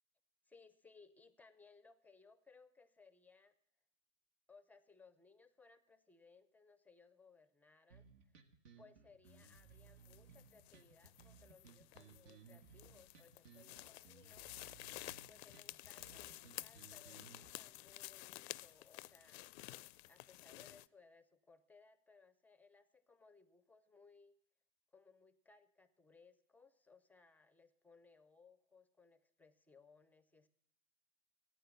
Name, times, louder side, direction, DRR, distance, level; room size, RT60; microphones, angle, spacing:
voice 1, 0.5-3.5 4.5-8.4 8.8-14.5 15.3-19.5 20.1-24.3 24.9-30.5, left 4 dB, 5° left, 13 dB, 0.5 m, -65 dB
sound 1, 7.9-17.5, right 6 dB, 65° right, 1.7 m, -62 dB
sound 2, 9.3-20.9, left 19 dB, 55° left, 0.4 m, -53 dB
14.5 x 9.0 x 7.0 m, 0.81 s
hypercardioid pair, 120°, 39 cm